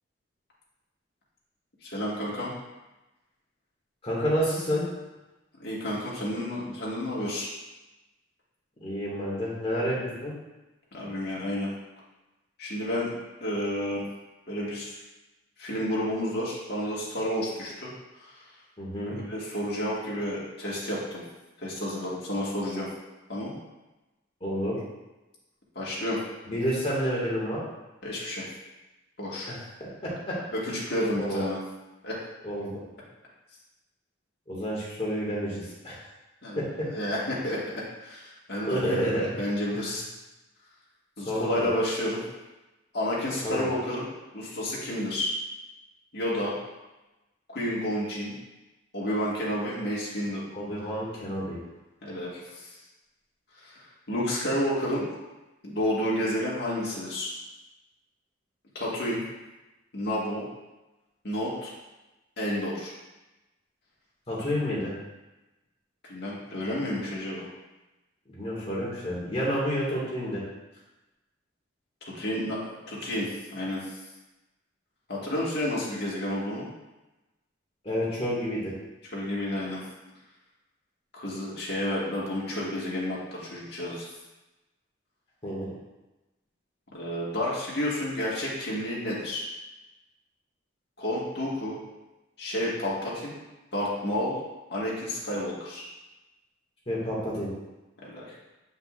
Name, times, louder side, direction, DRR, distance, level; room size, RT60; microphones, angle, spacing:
voice 1, 1.8-2.5 5.6-7.5 10.9-11.7 12.6-14.0 14.5-14.9 15.6-17.9 19.1-21.2 21.6-22.9 23.3-23.5 25.8-26.2 28.0-28.5 29.2-29.5 30.5-31.6 32.0-32.2 36.4-36.6 36.9-39.0 39.4-40.0 41.2-42.2 42.9-44.0 44.3-45.3 46.1-46.5 47.5-48.3 48.9-50.4 52.0-52.7 53.6-53.7 54.1-55.1 55.6-57.3 58.8-59.2 59.9-60.4 61.2-61.7 62.4-62.9 66.0-67.5 72.1-73.9 75.1-76.7 79.1-79.8 81.2-84.1 86.9-89.4 91.0-91.8 92.4-93.4 93.7-94.4 94.7-95.8 98.0-98.3, left 1 dB, 55° left, -6 dB, 1.8 m, -30 dB
voice 2, 4.0-4.9 8.8-10.3 18.8-19.2 24.4-24.8 26.5-27.6 29.5-30.4 31.2-31.4 32.4-32.8 34.5-36.0 36.6-36.9 38.7-39.3 39.7-39.9 41.3-41.7 43.4-43.6 50.5-51.6 64.3-64.9 68.3-70.4 77.8-78.7 85.4-85.7 96.9-97.5, equal, 30° left, -6 dB, 2.0 m, -29 dB
8.0 x 5.3 x 2.5 m, 1.0 s
head